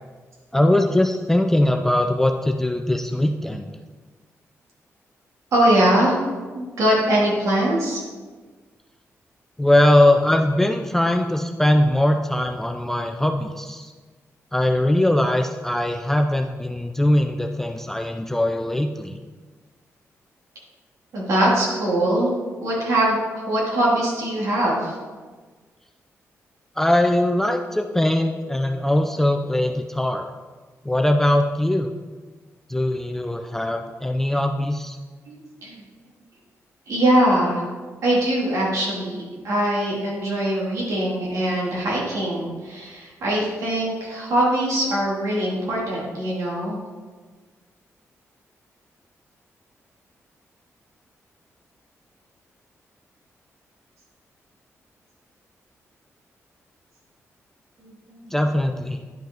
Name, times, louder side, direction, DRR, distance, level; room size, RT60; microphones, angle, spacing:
voice 1, 0.5-3.7 9.6-13.9 14.5-19.2 26.8-30.3 30.9-31.9 32.7-35.0 58.3-59.0, left 1 dB, 5° left, 4 dB, 0.3 m, -21 dB
voice 2, 5.5-6.2 6.5-8.0 21.1-22.3 22.6-25.0 35.3-35.8 36.9-37.6 38.0-46.8 57.8-58.3, right 1 dB, 75° right, -4 dB, 2.7 m, -22 dB
10.5 x 5.4 x 3.8 m, 1.4 s
wide cardioid pair, 165°, 5 cm